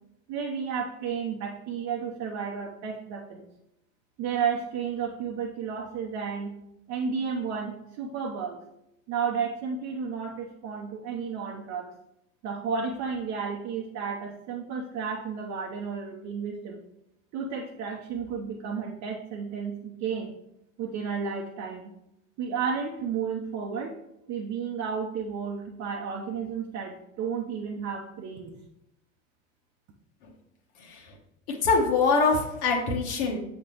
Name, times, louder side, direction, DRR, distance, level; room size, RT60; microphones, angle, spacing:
voice 1, 0.3-3.4 4.2-6.5 6.9-8.6 9.1-11.9 12.4-16.8 17.3-20.3 20.8-21.9 22.4-23.9 24.3-28.5, right 6 dB, 40° right, 1 dB, 0.9 m, -32 dB
voice 2, 30.8-31.1 31.6-33.4, left 4 dB, 55° left, 0 dB, 1.5 m, -24 dB
7.1 x 6.6 x 3.0 m, 0.84 s
figure-of-eight pair, 80°, 40 cm